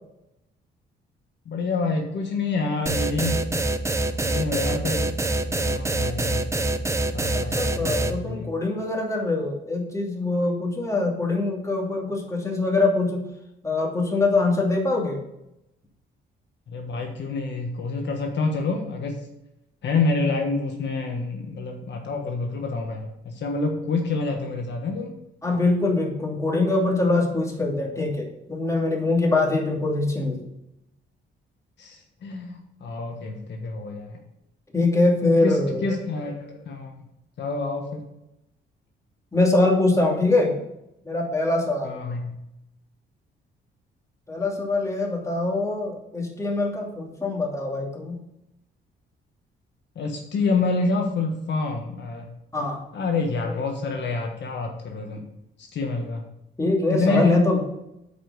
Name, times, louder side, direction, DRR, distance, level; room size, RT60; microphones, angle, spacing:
voice 1, 1.5-3.5 4.1-5.1 5.5-6.7 7.1-8.5 16.7-19.2 19.8-25.1 31.8-34.2 35.4-37.0 37.4-38.0 41.8-42.3 49.9-52.3 52.9-55.2 55.6-56.2 56.9-57.4, left 3 dB, 65° left, 2 dB, 1.4 m, -27 dB
sound 1, 2.9-8.1, right 2 dB, 15° right, 0.8 m, -25 dB
voice 2, 7.3-13.2 13.6-15.2 25.4-30.4 34.7-35.9 39.3-40.5 41.0-42.0 44.3-48.2 52.5-52.8 53.5-53.7 56.6-57.6, left 2 dB, 15° left, -2 dB, 2.9 m, -23 dB
8.5 x 5.4 x 6.4 m, 0.85 s
cardioid pair, 90°, 20 cm